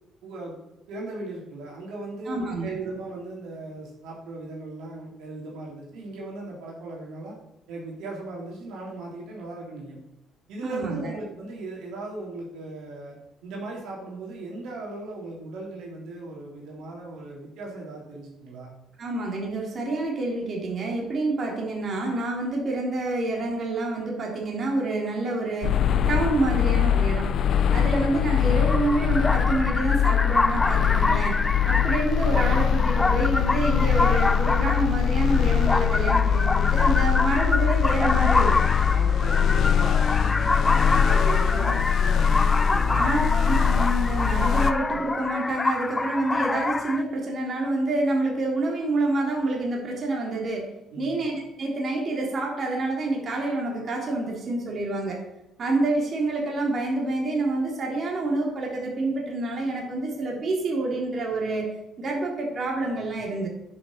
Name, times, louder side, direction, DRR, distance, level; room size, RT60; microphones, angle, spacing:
voice 1, 0.2-0.5 0.9-7.4 7.7-10.0 10.5-13.2 13.4-18.7 27.6-28.0 38.7-43.3 50.9-51.2, right 2 dB, 80° right, -3 dB, 3.3 m, -37 dB
voice 2, 2.3-2.8 10.6-11.1 19.0-25.8 26.1-27.4 27.7-31.4 31.7-38.7 42.9-50.7 51.0-55.2 55.6-61.7 62.0-63.5, right 2 dB, 45° right, -1 dB, 3.6 m, -27 dB
sound 1, 25.6-44.7, left 8 dB, 60° left, 0.6 m, -22 dB
sound 2, 28.7-47.0, left 3 dB, 20° left, 0.4 m, -27 dB
10.0 x 6.5 x 6.6 m, 0.92 s
cardioid pair, 85°, 0 cm